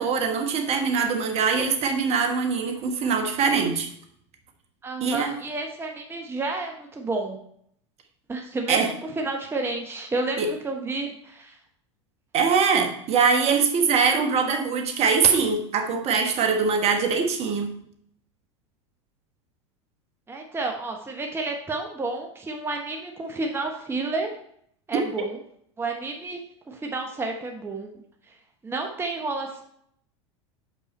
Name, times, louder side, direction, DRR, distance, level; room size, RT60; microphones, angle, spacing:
voice 1, 0.0-3.9 5.0-5.3 8.7-8.9 10.4-10.5 12.3-17.7 25.2-25.3, right 5 dB, 40° right, 4 dB, 1.2 m, -22 dB
voice 2, 4.8-7.4 8.3-11.6 20.3-24.4 24.9-25.4 25.8-27.9 28.2-28.4 28.6-29.6, right 3 dB, 15° right, 2 dB, 1.0 m, -31 dB
6.5 x 5.5 x 4.2 m, 0.68 s
hypercardioid pair, 90°, 16 cm